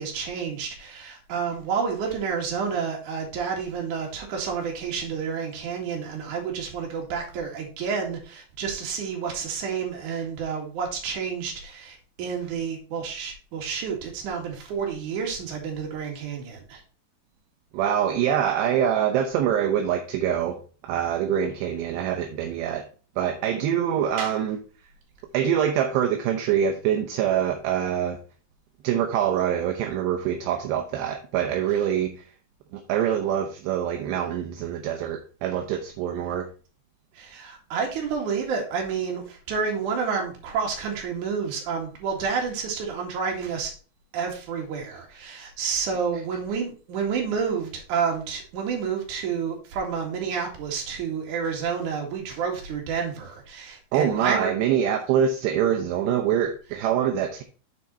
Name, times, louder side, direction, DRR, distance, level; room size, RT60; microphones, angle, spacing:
voice 1, 0.0-16.8 24.2-24.3 37.1-43.7 44.1-54.6, right 6 dB, 50° right, 0 dB, 2.9 m, -29 dB
voice 2, 17.7-22.8 23.2-24.6 25.3-28.2 28.8-32.1 32.7-36.5 53.9-57.4, right 9 dB, 80° right, 4 dB, 2.7 m, -25 dB
7.8 x 5.9 x 4.2 m, 0.37 s
omnidirectional pair, 5.3 m